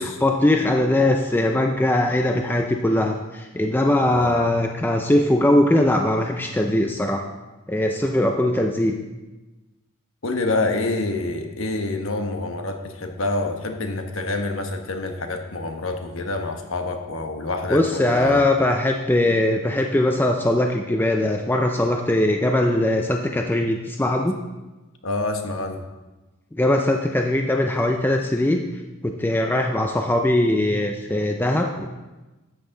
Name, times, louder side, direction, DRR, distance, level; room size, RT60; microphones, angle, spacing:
voice 1, 0.0-7.2 7.7-9.0 17.7-24.4 26.6-28.6 29.0-31.9, left 1 dB, 10° left, 3 dB, 0.5 m, -21 dB
voice 2, 10.2-18.5 25.0-25.9, left 2 dB, 70° left, 5 dB, 1.2 m, -27 dB
12.5 x 8.3 x 3.8 m, 1.1 s
head